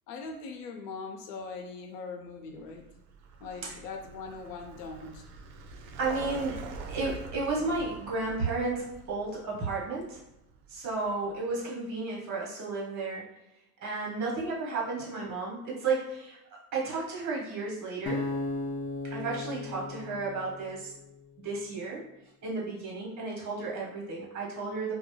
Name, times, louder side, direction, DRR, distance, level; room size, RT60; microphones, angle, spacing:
voice 1, 0.1-2.9 3.4-5.2, left 4 dB, 80° left, 4 dB, 0.7 m, -41 dB
Vehicle, 2.6-11.4, right 4 dB, 55° right, 0.5 m, -45 dB
voice 2, 6.0-10.2 10.7-13.2 13.8-16.4 16.7-18.3 19.1-20.9 21.4-22.0 22.4-24.9, right 3 dB, 35° right, -4 dB, 1.2 m, -33 dB
sound 1, 18.1-21.2, left 2 dB, 30° left, 0.5 m, -36 dB
2.3 x 2.1 x 3.0 m, 0.90 s
hypercardioid pair, 95°, 47 cm